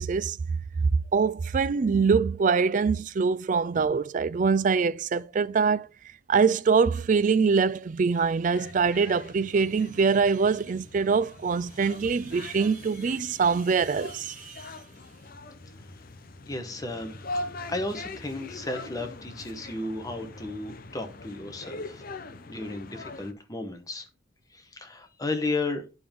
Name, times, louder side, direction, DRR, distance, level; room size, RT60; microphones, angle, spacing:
voice 1, 0.0-5.9 6.3-14.6, right 5 dB, 40° right, 0.3 m, -24 dB
sound 1, 8.5-23.3, left 2 dB, 45° left, 0.7 m, -42 dB
voice 2, 16.5-17.2 17.7-22.0 22.5-24.1 24.5-25.8, left 2 dB, 20° left, 0.9 m, -34 dB
9.5 x 5.3 x 3.5 m
head